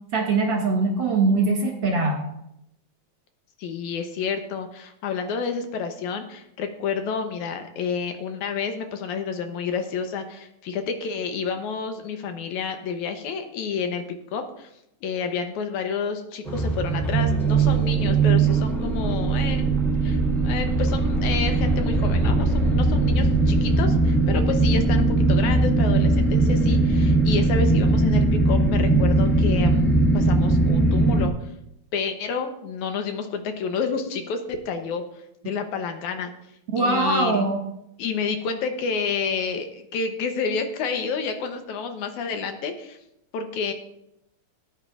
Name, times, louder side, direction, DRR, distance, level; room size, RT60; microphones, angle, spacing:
voice 1, 0.1-2.3 36.7-37.6, right 3 dB, 45° right, -1 dB, 2.2 m, -22 dB
voice 2, 3.6-14.0 14.3-14.7 15.0-19.7 20.0-29.8 30.1-31.5 31.9-36.3 36.8-37.5 38.0-43.0 43.3-43.7, left 5 dB, 75° left, 6 dB, 2.3 m, -29 dB
sound 1, 16.4-31.3, right 3 dB, ahead, 0.6 m, -20 dB
18.5 x 9.1 x 2.4 m, 0.82 s
omnidirectional pair, 3.5 m